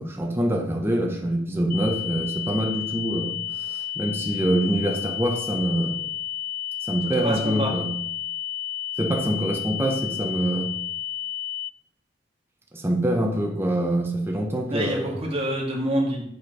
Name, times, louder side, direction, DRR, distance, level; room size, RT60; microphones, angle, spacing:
voice 1, 0.0-6.0 6.9-7.9 9.0-10.7 12.7-15.1, right 1 dB, 10° right, 1 dB, 0.9 m, -25 dB
sound 1, 1.7-11.7, left 12 dB, 45° left, 0.3 m, -31 dB
voice 2, 7.2-7.7 14.7-16.2, right 1 dB, 30° right, -2 dB, 1.9 m, -26 dB
7.2 x 4.5 x 4.7 m, 0.73 s
head